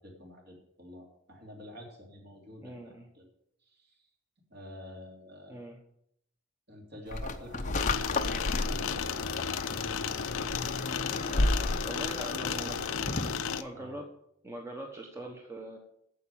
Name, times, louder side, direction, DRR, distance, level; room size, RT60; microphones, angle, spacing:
voice 1, 0.0-3.2 3.6-4.0 4.5-5.7 6.7-9.3 11.0-12.1 12.5-12.8 13.7-14.0, left 1 dB, 50° right, 0 dB, 3.2 m, -48 dB
voice 2, 2.6-3.1 5.5-5.8 11.8-12.8 13.0-13.2 13.6-14.1 14.4-15.8, right 1 dB, 15° right, 1 dB, 1.1 m, -42 dB
sound 1, 7.1-13.5, left 2 dB, 35° left, 0.7 m, -33 dB
sound 2, 7.7-13.6, left 7 dB, 75° left, 0.7 m, -34 dB
9.5 x 7.5 x 7.0 m, 0.73 s
head